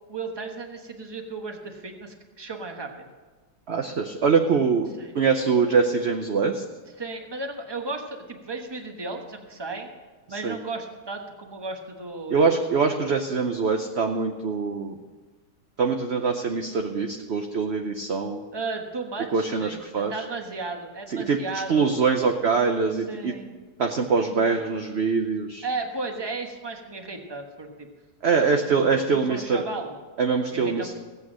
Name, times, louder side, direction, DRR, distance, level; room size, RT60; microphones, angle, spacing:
voice 1, 0.1-3.1 5.0-5.1 7.0-9.9 10.3-12.5 18.5-22.0 23.1-23.5 25.6-27.9 28.2-30.0 30.5-30.9, right 3 dB, 15° right, 3 dB, 1.1 m, -35 dB
voice 2, 3.7-4.9 5.1-6.6 10.4-10.6 12.3-15.0 15.8-18.4 19.3-20.1 21.1-23.3 23.8-25.6 28.2-29.6 30.2-30.9, right 5 dB, 50° right, 4 dB, 0.8 m, -23 dB
16.5 x 8.4 x 6.3 m, 1.4 s
omnidirectional pair, 1.9 m